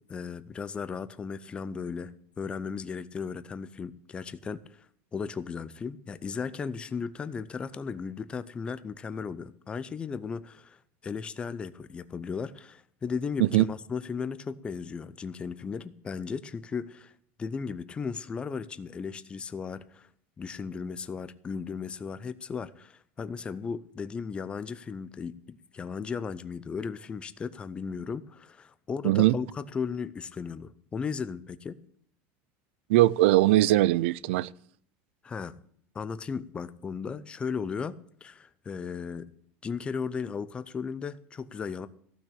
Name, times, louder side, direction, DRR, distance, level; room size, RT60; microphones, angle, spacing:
voice 1, 0.0-2.1 2.4-4.9 5.1-17.1 17.4-20.1 20.4-31.8 35.2-35.5 35.9-39.3 39.6-41.9, left 5 dB, 15° left, 0.5 m, -36 dB
voice 2, 29.0-29.4 32.9-34.5, right 16 dB, 80° right, 0.4 m, -21 dB
15.0 x 6.2 x 8.6 m
cardioid pair, 160°, 6 cm